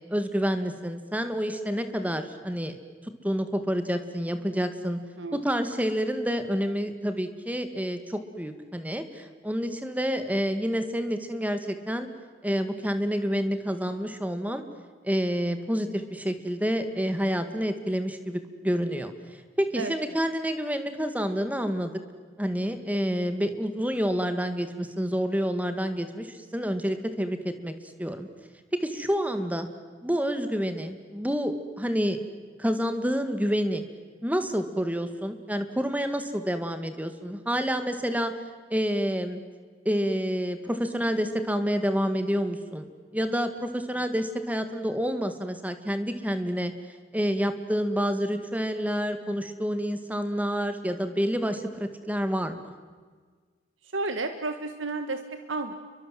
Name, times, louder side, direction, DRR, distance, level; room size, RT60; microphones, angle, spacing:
voice 1, 0.1-2.8 3.2-5.0 5.3-12.1 12.4-14.6 15.0-19.1 19.6-21.9 22.4-27.7 28.0-28.3 28.7-29.7 30.0-32.2 32.6-33.8 34.2-38.3 38.7-39.4 39.9-42.9 43.1-46.7 47.1-52.7, equal, 10° right, 9 dB, 2.0 m, -28 dB
voice 2, 53.9-55.7, right 3 dB, 90° right, 8 dB, 1.6 m, -31 dB
30.0 x 23.5 x 7.7 m, 1.5 s
head